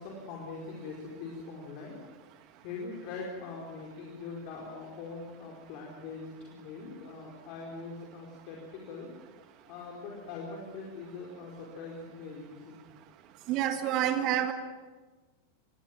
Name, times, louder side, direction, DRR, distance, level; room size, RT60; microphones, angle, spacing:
voice 1, 0.0-2.0 2.4-9.1 9.7-12.8, left 4 dB, 45° left, -1 dB, 4.8 m, -42 dB
voice 2, 13.5-14.5, right 11 dB, 40° right, 9 dB, 1.8 m, -28 dB
26.0 x 22.5 x 7.6 m, 1.3 s
figure-of-eight pair, 90°, 0 cm